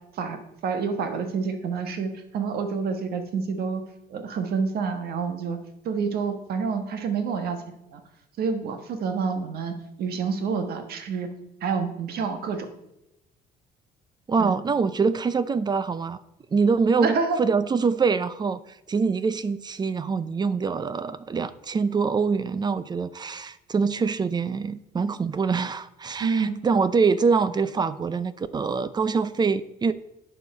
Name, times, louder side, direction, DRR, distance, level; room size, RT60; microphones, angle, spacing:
voice 1, 0.1-3.8 4.1-5.6 5.8-7.6 7.9-8.0 8.4-11.3 11.6-12.7 14.4-14.5 17.0-17.4 26.2-26.5, right 5 dB, 65° right, 7 dB, 1.4 m, -28 dB
voice 2, 14.3-16.2 16.5-18.6 18.9-29.9, right 5 dB, 25° right, 15 dB, 0.5 m, -24 dB
11.0 x 4.9 x 5.3 m, 0.85 s
cardioid pair, 110°, 17 cm